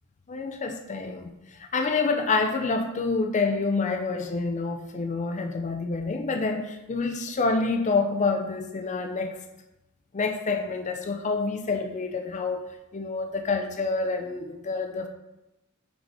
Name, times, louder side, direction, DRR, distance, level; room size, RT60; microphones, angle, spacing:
voice 1, 0.3-9.4 10.1-15.1, left 3 dB, 35° left, 4 dB, 0.5 m, -27 dB
6.1 x 4.8 x 4.0 m, 0.96 s
head